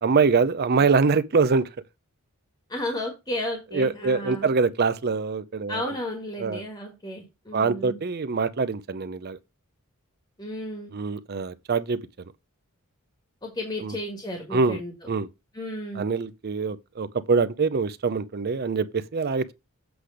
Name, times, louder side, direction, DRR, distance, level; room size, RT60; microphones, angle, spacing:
voice 1, 0.0-1.7 3.7-5.9 6.4-6.6 7.5-9.4 10.9-12.0 13.8-14.0 14.5-14.8 15.1-15.3 16.0-19.5, right 4 dB, 45° right, 0.5 m, -24 dB
voice 2, 2.7-4.5 5.7-8.0 10.4-10.9 13.4-14.9 15.5-16.0, left 1 dB, 20° left, 1.5 m, -33 dB
8.0 x 3.3 x 6.2 m
head